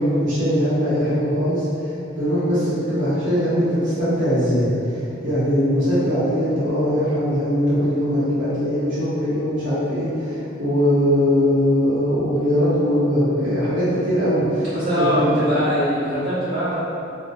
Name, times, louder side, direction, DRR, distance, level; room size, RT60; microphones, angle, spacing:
voice 1, 0.0-1.7 2.1-4.7 5.2-15.4, equal, 70° right, -13 dB, 1.4 m, -20 dB
voice 2, 14.6-16.8, equal, 50° right, -17 dB, 1.1 m, -22 dB
3.1 x 2.6 x 2.5 m, 2.7 s
head